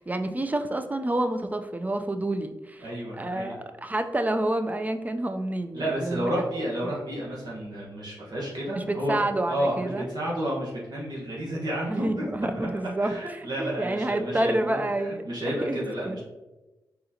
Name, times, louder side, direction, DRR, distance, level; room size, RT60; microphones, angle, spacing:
voice 1, 0.0-6.5 6.8-6.9 8.7-10.1 11.9-16.2, right 1 dB, 20° right, 8 dB, 0.5 m, -29 dB
voice 2, 2.8-3.5 5.7-12.2 12.6-12.7 13.0-16.2, right 1 dB, 60° right, -5 dB, 1.2 m, -31 dB
4.0 x 3.9 x 2.8 m, 1.1 s
cardioid pair, 50°, 8 cm